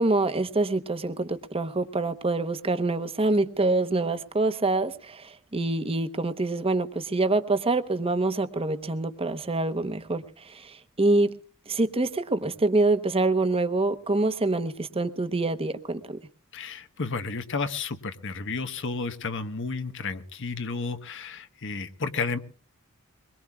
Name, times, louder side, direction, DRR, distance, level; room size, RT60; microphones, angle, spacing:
voice 1, 0.0-10.2 10.5-11.3 11.7-16.2, right 2 dB, 25° right, 10 dB, 0.9 m, -26 dB
voice 2, 16.5-22.4, left 4 dB, 60° left, 9 dB, 1.2 m, -32 dB
23.0 x 21.5 x 2.3 m, 0.38 s
head